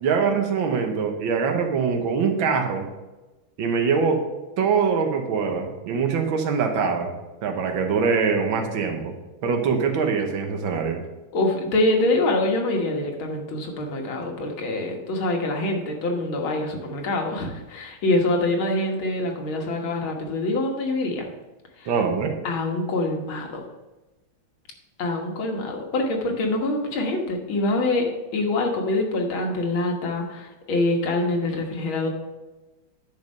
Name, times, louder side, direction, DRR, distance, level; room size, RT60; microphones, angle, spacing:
voice 1, 0.0-2.9 3.6-4.2 4.6-7.1 7.4-9.1 9.4-11.0 21.9-22.3, right 5 dB, 75° right, 4 dB, 1.9 m, -23 dB
voice 2, 11.3-21.3 21.8-21.9 22.4-23.6 25.0-32.1, left 2 dB, 80° left, 2 dB, 2.2 m, -25 dB
9.9 x 5.3 x 5.3 m, 1.1 s
omnidirectional pair, 2.2 m